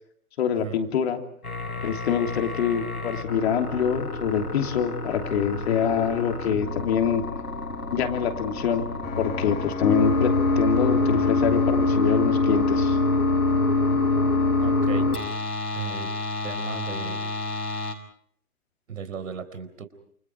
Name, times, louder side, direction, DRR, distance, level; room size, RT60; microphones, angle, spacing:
voice 1, 0.4-1.2 1.8-7.2 7.9-8.9 9.2-13.0, left 8 dB, 45° left, 4 dB, 3.2 m, -25 dB
sound 1, 1.4-17.9, left 3 dB, 85° left, 6.4 m, -26 dB
sound 2, 9.0-15.0, left 4 dB, 20° left, 4.6 m, -36 dB
voice 2, 14.6-15.1 15.7-16.1 16.4-17.3 18.9-19.9, right 7 dB, 60° right, 11 dB, 4.4 m, -36 dB
29.5 x 29.5 x 4.6 m, 0.64 s
figure-of-eight pair, 130°, 44 cm